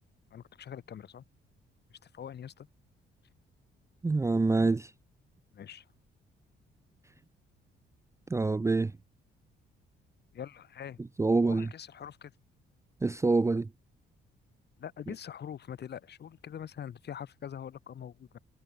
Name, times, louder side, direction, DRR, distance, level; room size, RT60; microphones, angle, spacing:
voice 1, 0.3-1.2 1.9-2.7 5.5-5.9 10.3-11.0 11.4-12.3 14.8-18.4, left 9 dB, 55° left, 2.5 m, -43 dB
voice 2, 4.0-4.9 8.3-8.9 11.2-11.7 13.0-13.7, right 3 dB, 15° right, 0.5 m, -26 dB
cardioid pair, 90°, 20 cm